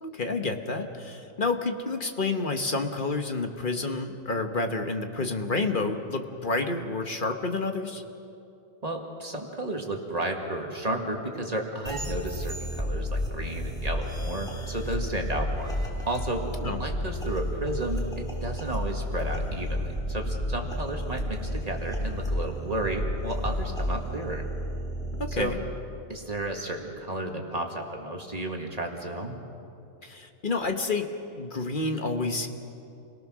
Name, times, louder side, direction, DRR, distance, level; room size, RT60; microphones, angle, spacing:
voice 1, 0.0-8.0 16.6-16.8 25.2-25.6 30.0-31.1 31.4-32.5, left 3 dB, 40° left, 5 dB, 1.3 m, -29 dB
voice 2, 8.8-15.8 16.1-24.5 25.3-25.6 26.1-29.4, right 1 dB, 30° right, 2 dB, 2.0 m, -33 dB
sound 1, 11.9-25.4, equal, 5° left, 2.6 m, -31 dB
28.5 x 18.5 x 6.2 m, 2.8 s
omnidirectional pair, 1.4 m